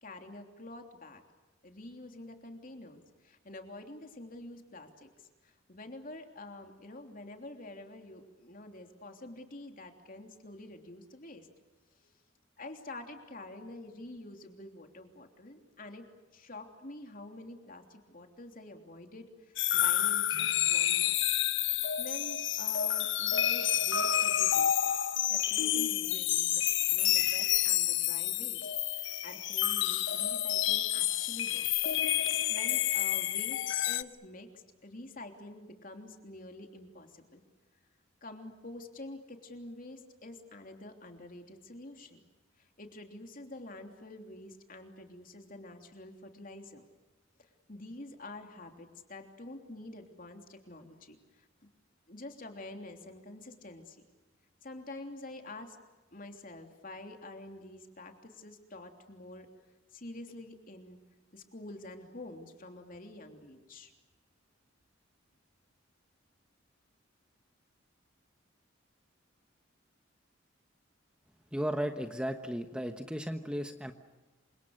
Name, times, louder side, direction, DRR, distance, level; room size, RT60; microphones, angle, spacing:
voice 1, 0.0-1.2 1.6-11.5 12.0-12.1 12.6-16.0 16.3-21.2 22.0-24.9 25.2-26.6 26.9-31.6 32.3-37.4 38.2-42.2 42.6-46.8 47.7-51.5 52.1-54.0 54.6-55.8 56.1-59.5 59.9-61.0 61.3-63.9, left 2 dB, 45° left, 4 dB, 3.3 m, -47 dB
sound 1, 19.6-34.0, left 11 dB, 65° left, 1.0 m, -29 dB
voice 2, 71.5-73.9, equal, 5° right, 6 dB, 1.1 m, -35 dB
28.5 x 26.5 x 6.6 m, 1.2 s
head